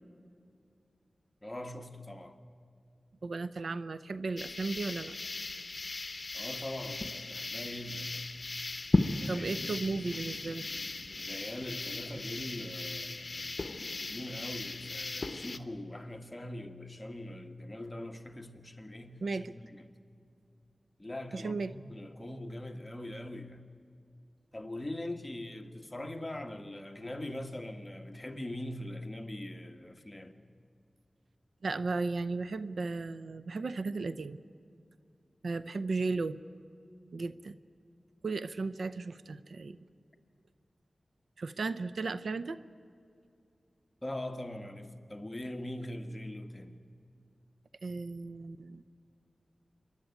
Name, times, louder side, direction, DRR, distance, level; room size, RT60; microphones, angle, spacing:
voice 1, 1.4-2.4 6.3-8.2 9.2-9.7 11.2-19.9 21.0-23.6 24.5-30.4 44.0-46.8, left 1 dB, 20° left, 1.6 m, -42 dB
voice 2, 3.2-5.1 9.3-10.7 19.2-19.5 21.3-21.7 31.6-34.4 35.4-36.4 37.1-37.6 38.2-39.8 41.4-42.6 47.8-48.8, right 3 dB, 85° right, 0.6 m, -35 dB
sound 1, 4.4-15.6, left 2 dB, 55° left, 1.0 m, -36 dB
26.0 x 11.5 x 9.4 m
wide cardioid pair, 55°, 0 cm